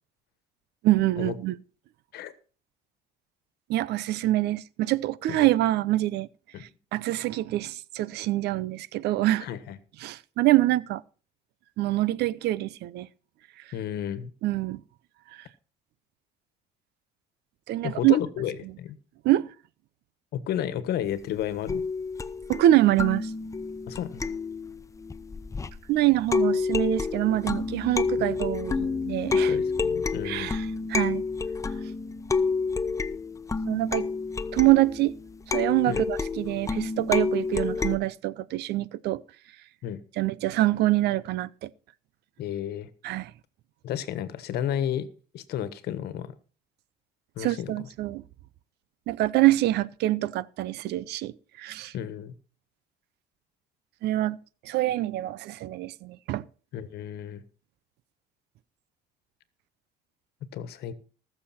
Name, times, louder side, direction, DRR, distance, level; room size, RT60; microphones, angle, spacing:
voice 1, 0.8-1.6 3.7-6.3 6.6-9.5 10.0-11.0 11.8-13.1 14.4-14.8 17.7-18.2 19.2-19.5 22.5-23.3 25.9-29.6 30.2-31.2 33.7-34.1 34.5-35.2 35.5-39.2 40.2-41.7 43.0-43.3 47.4-48.2 49.1-51.9 54.0-54.4 54.6-56.5, right 16 dB, 80° right, 0.7 m, -25 dB
voice 2, 9.4-9.8 13.7-14.3 17.8-19.0 20.3-21.8 23.9-24.3 29.4-30.6 35.9-36.1 39.8-40.0 42.4-42.9 43.8-45.1 45.3-46.3 47.4-47.9 51.9-52.3 56.7-57.4 60.5-60.9, left 10 dB, 70° left, 1.4 m, -32 dB
sound 1, 21.7-25.9 26.3-38.0, left 4 dB, 20° left, 0.6 m, -29 dB
20.0 x 6.9 x 4.3 m
cardioid pair, 110°, 17 cm